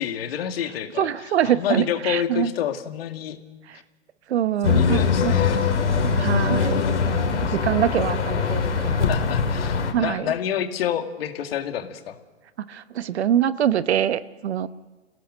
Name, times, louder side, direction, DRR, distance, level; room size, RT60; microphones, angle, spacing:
voice 1, 0.0-1.1 1.4-3.4 4.8-5.6 7.5-7.6 8.9-12.2, left 10 dB, 55° left, 7 dB, 2.1 m, -28 dB
voice 2, 1.0-2.5 3.7-3.8 4.3-5.3 5.8-9.1 9.9-10.3 12.6-14.7, right 10 dB, 60° right, 14 dB, 1.0 m, -24 dB
sound 1, 4.6-9.9, left 5 dB, 70° left, 3.3 m, -22 dB
28.5 x 17.0 x 6.6 m, 1.3 s
hypercardioid pair, 135°, 36 cm